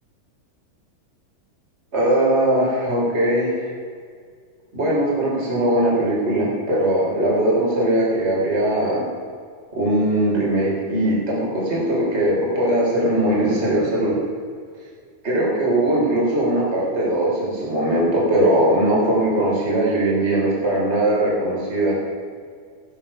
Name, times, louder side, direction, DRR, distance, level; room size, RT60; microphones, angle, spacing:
voice 1, 1.9-3.5 4.7-9.0 9.7-14.2 15.2-22.0, right 1 dB, 20° right, -4 dB, 3.8 m, -20 dB
15.5 x 11.5 x 5.6 m, 2.1 s
omnidirectional pair, 3.8 m